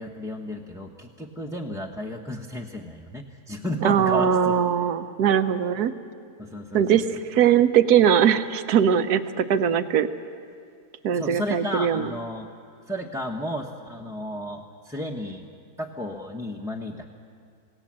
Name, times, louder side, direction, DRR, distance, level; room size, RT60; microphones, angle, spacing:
voice 1, 0.0-4.3 6.4-6.8 11.1-12.5 12.9-15.5 15.8-17.0, left 1 dB, 5° right, -2 dB, 0.9 m, -33 dB
voice 2, 3.8-5.9 6.7-10.1 11.0-12.1, right 8 dB, 85° right, 11 dB, 1.4 m, -21 dB
27.0 x 17.5 x 7.5 m, 2.3 s
omnidirectional pair, 1.6 m